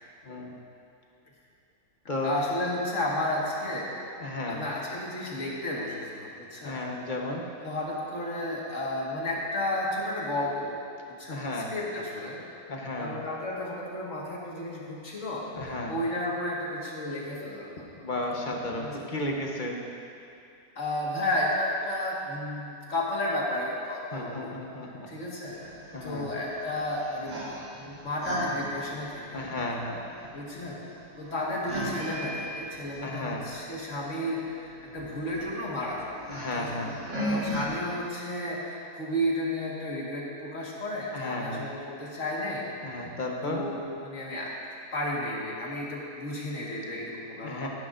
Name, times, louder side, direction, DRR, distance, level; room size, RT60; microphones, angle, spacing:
voice 1, 0.2-0.6 2.1-2.3 4.2-4.6 6.6-7.5 11.3-11.7 12.7-13.2 15.5-15.9 18.0-19.9 24.1-25.1 25.9-26.3 29.3-30.0 33.0-33.4 36.3-36.9 41.1-41.6 42.8-43.6 47.4-47.7, left 2 dB, 35° left, -1 dB, 1.1 m, -33 dB
voice 2, 2.2-6.8 7.6-10.8 11.2-12.4 13.0-18.0 18.8-19.1 20.8-24.5 24.8-29.5 30.3-30.8 31.2-36.1 36.5-36.8 37.2-43.1 43.4-44.5 44.9-47.7, left 1 dB, 50° left, -4 dB, 2.0 m, -33 dB
sound 1, 25.5-37.7, equal, 50° right, 2.0 m, -38 dB
15.0 x 10.5 x 2.6 m, 2.5 s
omnidirectional pair, 1.7 m